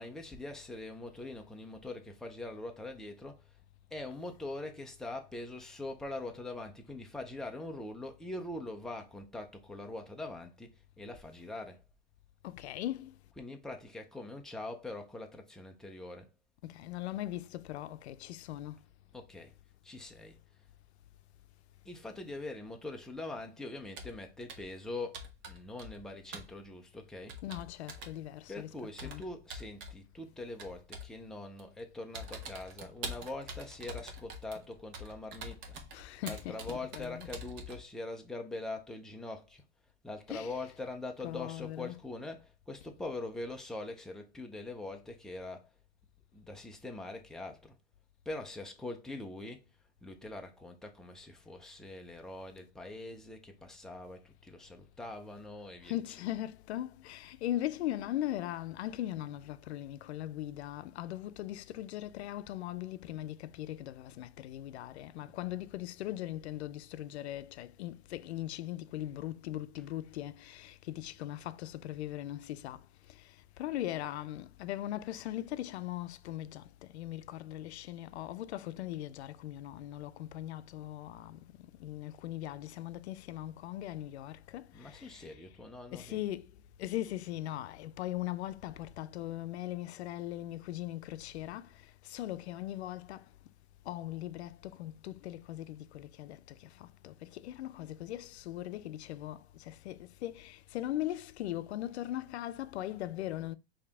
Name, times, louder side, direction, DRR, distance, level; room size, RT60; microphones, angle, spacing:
voice 1, 0.0-3.5 3.9-11.8 13.3-16.3 19.1-19.5 19.8-20.4 21.9-27.4 28.5-35.8 36.2-39.6 40.0-45.7 46.3-47.7 48.3-49.6 50.0-56.3 69.8-69.9 84.7-86.2, left 2 dB, ahead, 0.3 m, -43 dB
voice 2, 12.4-13.1 16.6-18.8 27.4-28.7 29.0-29.2 35.9-37.3 40.3-40.5 41.2-41.9 55.8-72.8 73.1-81.5 81.8-85.3 85.9-86.5 86.8-93.3 93.9-103.5, left 14 dB, 80° left, 0.5 m, -39 dB
Computer keyboard, 24.0-24.2 24.5-24.8 25.1-26.1 26.3-26.5 27.3-28.2 29.0-30.0 30.6-31.1 31.6-31.8 32.1-37.8, right 1 dB, 35° right, 1.1 m, -45 dB
4.7 x 2.8 x 3.4 m
supercardioid pair, 140°, 32 cm